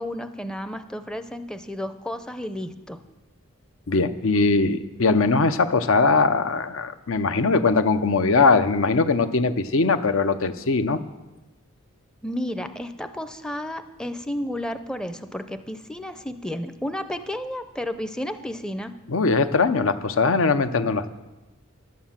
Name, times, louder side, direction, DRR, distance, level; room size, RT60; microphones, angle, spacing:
voice 1, 0.0-3.0 12.2-18.9, left 1 dB, 5° left, 9 dB, 0.5 m, -32 dB
voice 2, 3.9-11.0 19.1-21.1, left 4 dB, 70° left, 11 dB, 0.7 m, -21 dB
11.5 x 9.4 x 7.3 m, 1.1 s
head